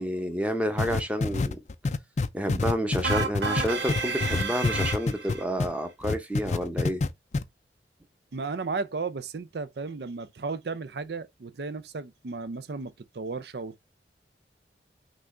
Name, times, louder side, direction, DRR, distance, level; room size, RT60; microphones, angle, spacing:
voice 1, 0.0-1.6 2.3-7.0, equal, 10° right, 0.8 m, -29 dB
sound 1, 0.8-5.7 6.0-7.1 7.3-7.4, left 3 dB, 40° left, 0.4 m, -26 dB
sound 2, 3.0-5.4, right 4 dB, 80° right, 1.2 m, -31 dB
voice 2, 8.3-13.8, right 4 dB, 65° right, 0.5 m, -34 dB
6.0 x 2.5 x 3.2 m
head